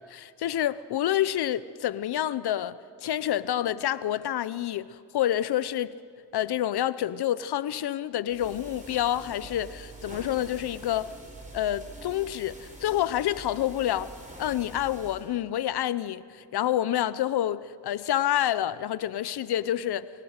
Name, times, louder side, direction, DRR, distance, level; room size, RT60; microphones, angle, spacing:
voice 1, 0.0-5.9 6.3-11.1 11.5-14.1 14.4-20.1, left 12 dB, 70° left, 0.8 m, -28 dB
sound 1, 8.3-15.3, right 2 dB, 20° right, 4.8 m, -45 dB
26.5 x 23.5 x 6.6 m
cardioid pair, 110°, 41 cm